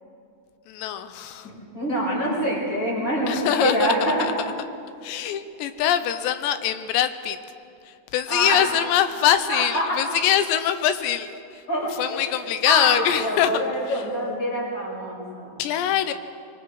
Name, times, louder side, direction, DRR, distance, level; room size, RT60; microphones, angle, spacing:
voice 1, 0.7-1.5 3.3-4.3 5.0-7.4 7.9-11.6 12.0-13.5 13.9-14.0 15.6-16.1, left 10 dB, 80° left, 10 dB, 2.8 m, -23 dB
voice 2, 1.4-4.2 8.3-8.6 9.5-10.0 11.7-12.3 12.6-15.7, equal, 25° left, -4 dB, 6.4 m, -25 dB
25.0 x 23.0 x 4.8 m, 2.5 s
omnidirectional pair, 5.3 m